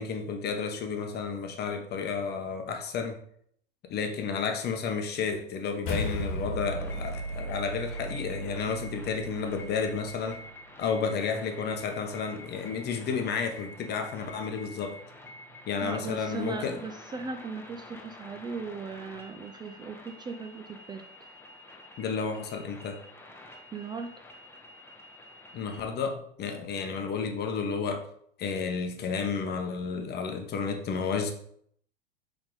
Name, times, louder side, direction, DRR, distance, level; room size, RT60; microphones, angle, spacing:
voice 1, 0.0-3.2 3.9-10.4 10.8-15.0 15.7-16.8 22.0-23.0 25.5-28.1 28.4-31.3, left 5 dB, 35° left, 1.0 m, -31 dB
sound 1, 5.8-10.4, equal, 50° left, 1.5 m, -36 dB
sound 2, 6.8-25.8, left 1 dB, 10° left, 1.1 m, -48 dB
voice 2, 15.8-21.1 23.7-24.1, right 4 dB, 15° right, 0.4 m, -38 dB
8.5 x 3.6 x 3.9 m
hypercardioid pair, 105°, 29 cm